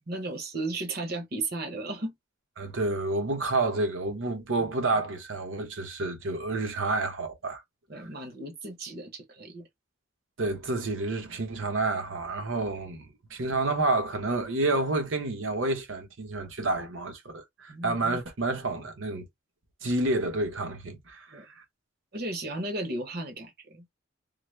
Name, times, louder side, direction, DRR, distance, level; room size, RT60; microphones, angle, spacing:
voice 1, 0.0-2.1 4.6-4.7 7.9-9.7 17.7-18.0 21.3-21.5 22.1-23.9, right 2 dB, 50° right, 1.0 m, -35 dB
voice 2, 2.6-7.6 8.0-8.1 10.4-19.2 19.8-21.6, right 2 dB, 75° right, 1.0 m, -29 dB
3.8 x 2.1 x 3.2 m
head